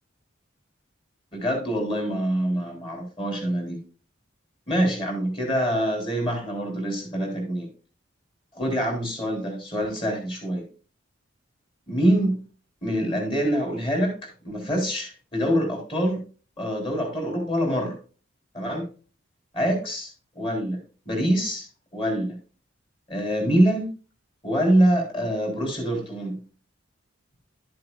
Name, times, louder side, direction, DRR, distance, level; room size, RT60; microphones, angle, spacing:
voice 1, 1.3-3.8 4.7-7.7 8.5-10.6 11.9-12.4 12.8-16.2 16.6-18.0 18.5-18.9 19.5-20.8 21.1-21.7 21.9-22.4 23.1-23.9 24.4-26.4, equal, 25° left, 1 dB, 3.7 m, -25 dB
12.0 x 7.6 x 2.3 m, 0.35 s
head